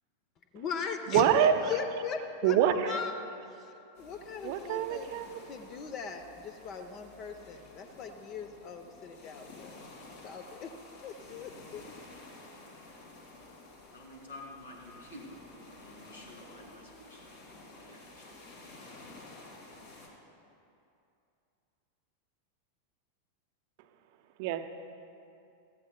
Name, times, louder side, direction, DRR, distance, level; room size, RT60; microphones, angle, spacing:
voice 1, 0.5-2.6 2.8-3.2 3.5-9.9 10.2-11.8, left 6 dB, 35° left, 7 dB, 0.8 m, -39 dB
voice 2, 1.1-1.5 2.4-3.0 4.4-5.4 24.4-24.6, right 10 dB, 50° right, 8 dB, 0.7 m, -26 dB
sound 1, 3.9-20.1, left 2 dB, 55° left, 2.4 m, -52 dB
voice 3, 13.9-15.3 15.8-17.2 17.6-18.5, left 2 dB, 70° left, -1 dB, 2.5 m, -50 dB
16.0 x 15.0 x 2.3 m, 2.6 s
figure-of-eight pair, 90°, 0 cm